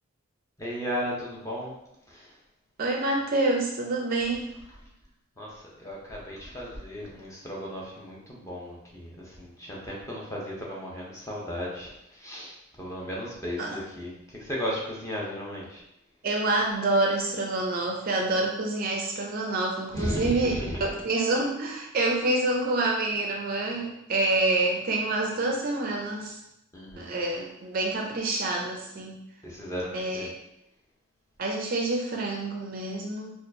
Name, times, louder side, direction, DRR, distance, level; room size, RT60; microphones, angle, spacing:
voice 1, 0.6-1.7 2.1-2.4 4.8-4.9 5.4-15.8 19.9-21.0 26.7-27.2 29.4-30.3, equal, 15° left, -4 dB, 0.7 m, -35 dB
voice 2, 2.8-4.5 13.6-13.7 16.2-26.4 27.0-29.2 29.9-30.3 31.4-33.3, right 2 dB, 40° right, 0 dB, 0.4 m, -27 dB
4.2 x 2.4 x 2.6 m, 0.82 s
head